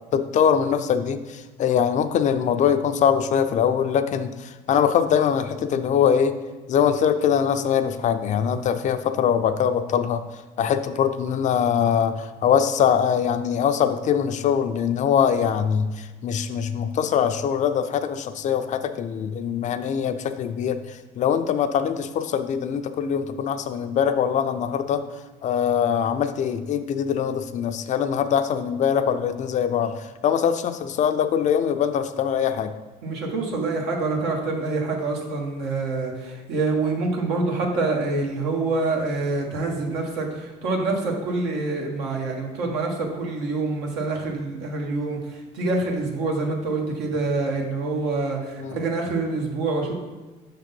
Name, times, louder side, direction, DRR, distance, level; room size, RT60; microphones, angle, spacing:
voice 1, 0.1-6.3 6.7-10.2 10.6-20.8 21.2-25.0 25.4-32.7 48.6-48.8, left 8 dB, 45° left, 9 dB, 0.4 m, -22 dB
voice 2, 33.0-49.9, right 3 dB, 80° right, 0 dB, 1.3 m, -26 dB
5.7 x 3.7 x 5.4 m, 1.3 s
supercardioid pair, 90°, 17 cm